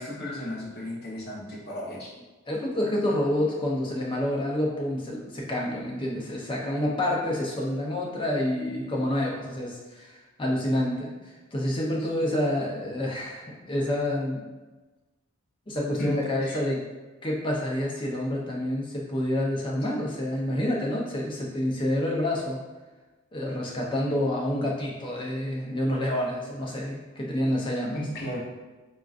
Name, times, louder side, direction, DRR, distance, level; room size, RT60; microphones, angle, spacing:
voice 1, 0.0-2.1 16.0-16.2 16.4-16.6 27.9-28.4, left 1 dB, 50° left, -6 dB, 0.9 m, -34 dB
voice 2, 2.5-11.1 11.5-14.5 15.7-16.8 17.2-22.6 23.3-28.0, left 1 dB, 25° left, -3 dB, 0.5 m, -28 dB
3.6 x 2.4 x 2.4 m, 1.2 s
head